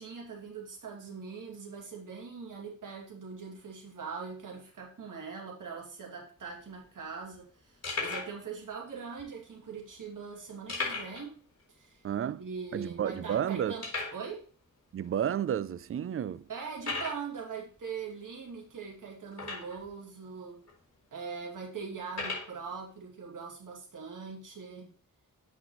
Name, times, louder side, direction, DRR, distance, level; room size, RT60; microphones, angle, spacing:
voice 1, 0.0-11.4 11.7-12.0 12.4-14.5 16.5-20.6 21.1-24.9, right 5 dB, 65° right, 2.5 m, -42 dB
sound 1, 6.4-6.5 6.6-6.8 7.3-7.4 7.8-8.4 9.1-9.2 10.7-11.3 11.6-11.7 12.1-12.2 12.8-12.9 13.8-14.2 15.0-15.1 15.7-15.8 16.8-17.2 19.3-19.9 20.7-20.8 22.1-22.5, left 3 dB, 45° left, 3.8 m, -36 dB
voice 2, 12.0-12.4 12.7-13.8 14.9-16.5, right 9 dB, 40° right, 0.4 m, -31 dB
8.0 x 5.9 x 3.1 m
cardioid pair, 80°, 35 cm